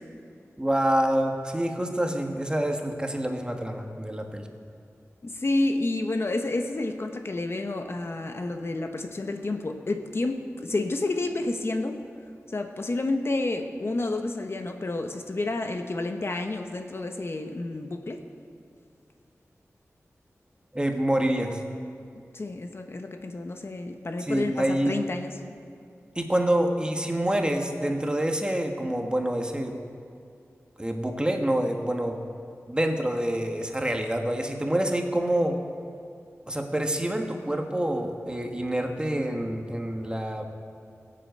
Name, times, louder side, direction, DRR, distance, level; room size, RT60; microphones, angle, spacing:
voice 1, 0.6-4.5 20.7-21.6 24.2-25.0 26.1-29.7 30.8-32.2 32.7-35.6 36.5-40.5, right 1 dB, 15° right, 4 dB, 1.5 m, -27 dB
voice 2, 5.2-12.0 12.5-18.2 22.3-25.3, left 2 dB, 55° left, 5 dB, 1.1 m, -30 dB
17.0 x 7.8 x 7.9 m, 2.4 s
wide cardioid pair, 60°, 5 cm